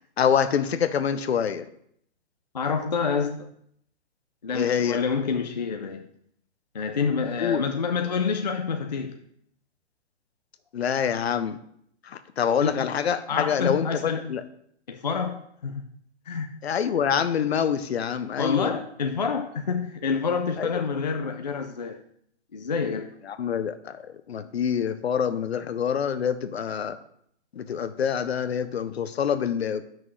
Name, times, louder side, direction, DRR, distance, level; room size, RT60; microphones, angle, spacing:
voice 1, 0.2-1.7 4.5-5.0 7.4-7.6 10.7-11.6 12.0-14.4 16.6-18.7 20.6-20.8 23.4-24.0 24.3-27.0 27.5-29.9, left 8 dB, 65° left, 12 dB, 0.7 m, -26 dB
voice 2, 2.5-3.5 4.4-6.1 6.7-9.2 12.6-12.9 13.3-14.3 14.9-15.8 16.3-16.5 18.4-22.0 22.5-23.1, left 5 dB, 40° left, 5 dB, 0.4 m, -28 dB
9.6 x 6.0 x 3.1 m, 0.69 s
hypercardioid pair, 180°, 34 cm